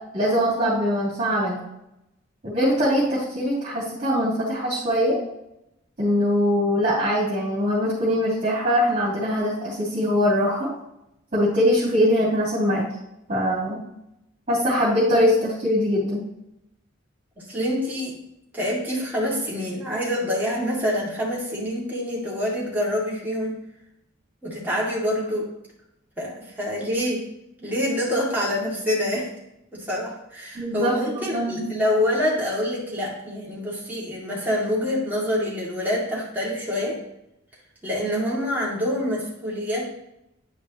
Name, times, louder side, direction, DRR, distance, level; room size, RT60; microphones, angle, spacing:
voice 1, 0.1-1.6 2.4-5.2 6.0-10.7 11.3-12.9 13.3-13.8 14.5-16.2 30.5-30.9 31.2-31.7, equal, 40° right, -10 dB, 2.9 m, -22 dB
voice 2, 17.4-18.2 18.5-23.6 24.4-25.5 26.2-27.2 27.6-29.3 29.7-37.0 37.8-39.8, left 1 dB, 10° right, -6 dB, 2.3 m, -26 dB
9.9 x 5.3 x 3.0 m, 0.85 s
head